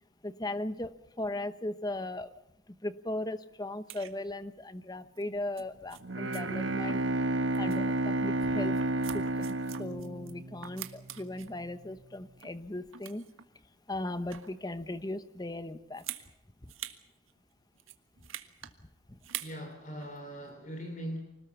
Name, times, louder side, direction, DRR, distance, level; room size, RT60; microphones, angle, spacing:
voice 1, 0.2-2.3 2.8-7.0 7.6-8.8 9.1-13.3 13.9-16.0 16.6-16.7 19.1-19.2, left 1 dB, 20° left, 13 dB, 1.0 m, -37 dB
sound 1, 3.9-4.1 5.1-5.2 5.6-5.7 5.9-6.0 6.3-6.4 6.9-7.3 7.5-7.8 8.3-10.3 10.6-11.5 12.1-12.6 12.9-13.4 14.1-14.6 15.9-16.3 16.7-17.0 17.3-17.4 17.8-18.7 19.2-19.6 20.0-20.2, right 11 dB, 85° right, 1.6 m, -44 dB
Bowed string instrument, 6.0-10.9, right 2 dB, 65° right, 1.3 m, -31 dB
voice 2, 19.4-21.2, equal, 40° left, 4 dB, 3.2 m, -40 dB
25.5 x 19.0 x 7.1 m, 0.85 s
head